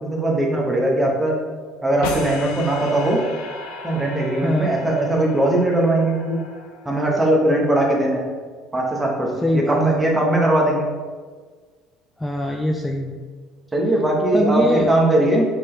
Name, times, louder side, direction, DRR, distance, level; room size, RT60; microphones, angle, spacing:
voice 1, 0.0-1.3 1.8-3.2 3.8-6.4 6.8-8.3 8.7-10.9 13.7-15.5, right 1 dB, 15° right, -1 dB, 1.2 m, -19 dB
sound 1, 2.0-7.2, left 4 dB, 80° left, 0.6 m, -35 dB
voice 2, 4.4-4.7 9.4-10.0 12.2-13.2 14.3-14.9, left 1 dB, 10° left, 1 dB, 0.4 m, -22 dB
4.0 x 3.8 x 3.3 m, 1.5 s
supercardioid pair, 75°, 0 cm